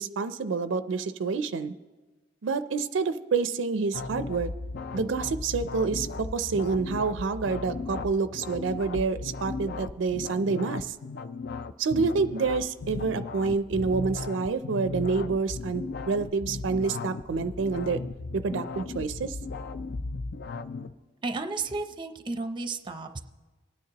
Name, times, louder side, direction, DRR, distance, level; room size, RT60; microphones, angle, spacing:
voice 1, 0.0-1.7 2.4-4.5 4.9-10.9 11.8-18.0 18.3-19.4, right 4 dB, 75° right, 12 dB, 0.4 m, -28 dB
sound 1, 3.9-20.9, left 3 dB, 60° left, 0.4 m, -36 dB
voice 2, 21.2-23.2, right 3 dB, 25° right, 8 dB, 0.6 m, -33 dB
25.0 x 9.3 x 2.9 m, 1.3 s
head